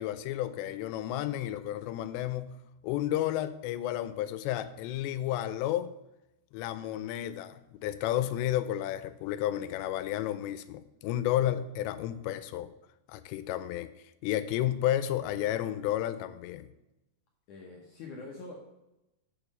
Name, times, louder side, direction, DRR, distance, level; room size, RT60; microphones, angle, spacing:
voice 1, 0.0-2.6 2.8-5.9 6.5-12.7 13.1-13.9 14.2-16.7, left 12 dB, 90° left, 13 dB, 2.8 m, -32 dB
voice 2, 17.5-18.6, left 3 dB, 70° left, -1 dB, 1.9 m, -44 dB
7.3 x 6.9 x 5.4 m, 0.92 s
omnidirectional pair, 5.0 m